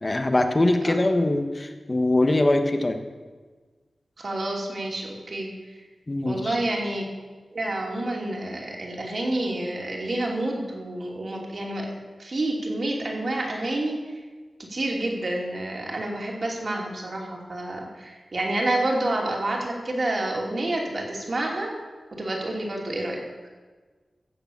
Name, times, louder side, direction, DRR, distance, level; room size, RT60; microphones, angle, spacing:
voice 1, 0.0-3.0 6.1-6.6, left 2 dB, 30° left, 6 dB, 1.2 m, -22 dB
voice 2, 4.2-5.5 6.2-7.0 7.5-11.9 12.2-14.0 14.7-21.7 22.1-23.2, right 1 dB, 50° right, -1 dB, 2.9 m, -28 dB
15.5 x 6.9 x 7.4 m, 1.4 s
wide cardioid pair, 95°, 0 cm